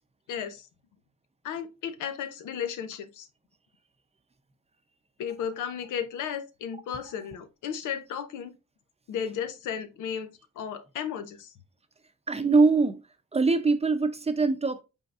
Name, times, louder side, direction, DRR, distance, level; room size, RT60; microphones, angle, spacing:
voice 1, 0.3-0.7 1.4-3.3 5.2-8.5 9.1-10.3 10.6-11.5, left 8 dB, 85° left, 0.9 m, -34 dB
voice 2, 12.3-13.0 13.3-14.8, right 4 dB, 20° right, 0.6 m, -23 dB
5.5 x 3.8 x 2.4 m
cardioid pair, 90°, 30 cm